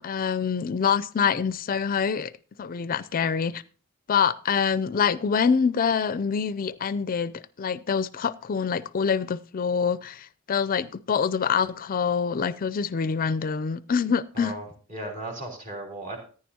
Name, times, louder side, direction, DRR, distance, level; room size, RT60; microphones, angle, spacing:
voice 1, 0.0-2.3 2.6-3.6 4.1-7.3 7.6-14.5, left 6 dB, 40° left, 0.4 m, -25 dB
voice 2, 14.3-16.2, right 1 dB, 40° right, 3.4 m, -36 dB
14.5 x 9.9 x 2.8 m
head